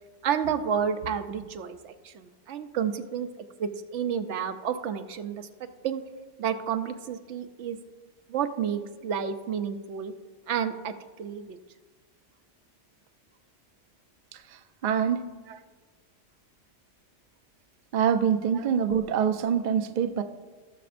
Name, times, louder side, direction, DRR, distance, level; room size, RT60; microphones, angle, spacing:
voice 1, 0.2-3.3 3.6-6.0 6.4-7.8 8.3-10.1 10.5-11.6 15.5-15.6 18.5-18.7, right 8 dB, 75° right, 9 dB, 0.9 m, -31 dB
voice 2, 14.8-15.3 17.9-20.2, right 8 dB, 60° right, 7 dB, 0.5 m, -25 dB
17.5 x 6.9 x 2.5 m, 1.4 s
omnidirectional pair, 1.3 m